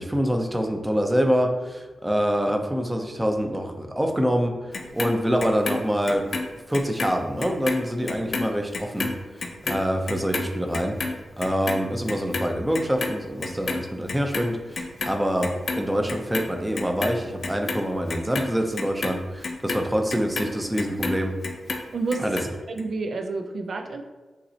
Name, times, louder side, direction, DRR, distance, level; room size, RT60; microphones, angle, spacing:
voice 1, 0.0-1.5 2.0-4.6 4.9-6.3 6.7-9.1 9.6-10.9 11.4-14.6 15.1-15.5 15.8-19.2 19.6-21.3 22.2-22.4, equal, 10° right, 4 dB, 0.5 m, -25 dB
Clock, 4.7-7.1 7.4-13.8 14.1-15.1 15.4-16.4 16.7-21.2 21.4-22.4 22.8-22.9, left 3 dB, 60° left, 0.5 m, -30 dB
voice 2, 21.9-22.4 22.7-24.0, right 3 dB, 65° right, 5 dB, 0.3 m, -29 dB
5.5 x 3.1 x 2.8 m, 1.2 s
wide cardioid pair, 95°, 0 cm